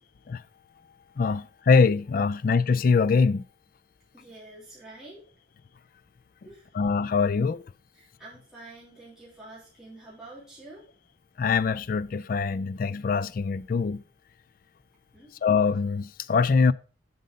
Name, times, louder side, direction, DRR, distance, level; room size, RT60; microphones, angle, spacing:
voice 1, 1.2-3.4 6.7-7.6 11.4-14.0 15.4-16.7, left 5 dB, 45° left, 0.3 m, -23 dB
voice 2, 4.1-5.2 6.4-6.7 7.9-10.8 15.1-15.3, right 2 dB, 5° right, 3.3 m, -47 dB
7.7 x 5.5 x 5.1 m
head